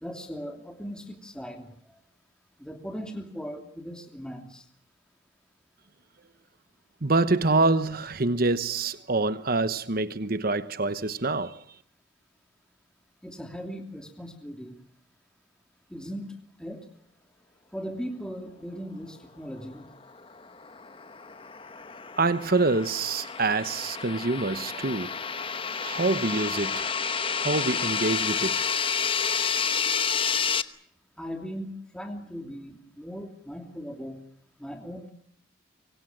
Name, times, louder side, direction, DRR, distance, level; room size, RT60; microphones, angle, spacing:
voice 1, 0.0-1.7 2.6-4.6 13.2-14.8 15.9-16.9 17.7-19.9 31.2-34.2 34.6-35.1, equal, 5° left, 2.8 m, -38 dB
voice 2, 7.0-11.6 22.2-25.1 25.8-26.9 27.4-28.7, right 3 dB, 45° right, 1.1 m, -26 dB
sound 1, 20.2-30.6, left 6 dB, 25° left, 1.0 m, -30 dB
25.5 x 24.0 x 7.5 m
head